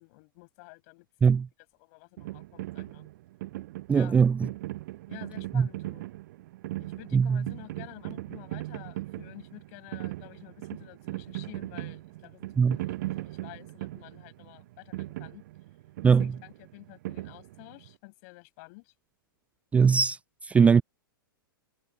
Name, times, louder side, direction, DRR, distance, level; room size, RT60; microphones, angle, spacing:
voice 1, 0.0-1.4 1.8-3.1 3.9-4.2 5.1-6.1 6.8-15.4 16.2-18.8, left 29 dB, 45° left, 7.9 m, -50 dB
sound 1, 2.2-17.9, right 17 dB, 55° right, 0.6 m, -39 dB
voice 2, 3.9-4.5 5.5-5.7 7.1-7.4 12.6-12.8 16.0-16.3 19.7-20.2 20.4-20.8, right 6 dB, 10° right, 0.3 m, -20 dB
hypercardioid pair, 110°, 12 cm